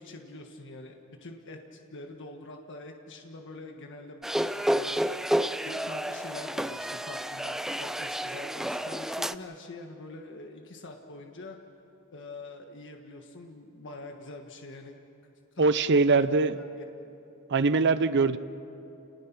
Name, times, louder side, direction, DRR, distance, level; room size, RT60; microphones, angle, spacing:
voice 1, 0.0-4.3 4.7-5.0 5.6-7.5 7.8-11.6 12.1-15.0 15.5-15.8 16.1-16.8, left 2 dB, 60° left, 3 dB, 1.5 m, -45 dB
sound 1, 4.2-9.3, equal, ahead, 0.4 m, -30 dB
voice 2, 15.6-16.6 17.5-18.4, right 3 dB, 55° right, 13 dB, 0.6 m, -22 dB
29.5 x 19.5 x 6.0 m, 3.0 s
head